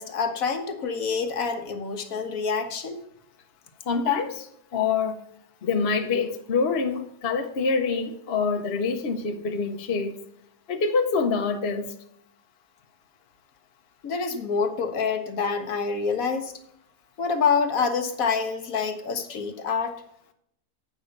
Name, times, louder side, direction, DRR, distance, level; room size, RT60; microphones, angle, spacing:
voice 1, 0.0-3.0 14.0-16.5 17.2-20.0, left 5 dB, 70° left, 7 dB, 1.4 m, -27 dB
voice 2, 3.8-5.2 5.6-10.2 10.7-11.9, left 5 dB, 50° left, 4 dB, 1.0 m, -26 dB
8.5 x 5.4 x 6.4 m, 0.73 s
omnidirectional pair, 1.6 m